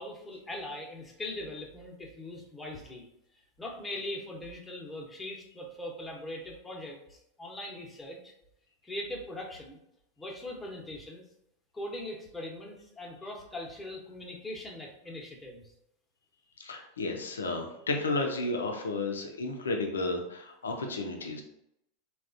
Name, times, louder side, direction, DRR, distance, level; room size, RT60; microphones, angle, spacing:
voice 1, 0.0-3.0 3.6-8.3 8.8-9.8 10.2-11.2 11.7-15.6, left 1 dB, 15° left, -1 dB, 0.9 m, -41 dB
voice 2, 16.6-21.4, left 2 dB, 90° left, 3 dB, 0.5 m, -32 dB
3.5 x 2.3 x 2.6 m, 0.79 s
hypercardioid pair, 95°, 0 cm